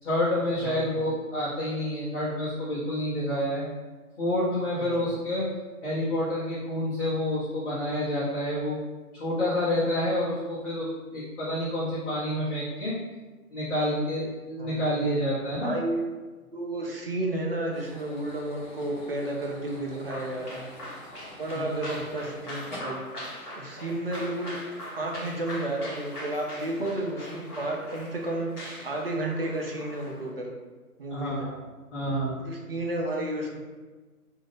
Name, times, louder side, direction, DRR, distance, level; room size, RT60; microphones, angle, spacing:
voice 1, 0.0-3.7 4.2-5.5 5.8-8.8 9.1-12.9 13.5-15.7 21.5-21.7 31.1-31.6 31.9-32.4, left 1 dB, 50° left, -11 dB, 1.1 m, -28 dB
voice 2, 0.6-1.0 4.8-5.1 14.6-14.8 15.6-16.1 16.5-20.7 21.4-23.0 23.6-24.6 25.0-28.5 28.8-30.5 31.0-31.5 32.4-33.6, right 1 dB, 40° right, 0 dB, 0.5 m, -32 dB
sound 1, 17.7-22.8, left 1 dB, 30° left, 0.5 m, -47 dB
sound 2, 20.1-30.3, equal, 75° left, 1.1 m, -41 dB
2.7 x 2.4 x 3.3 m, 1.3 s
figure-of-eight pair, 145°, 46 cm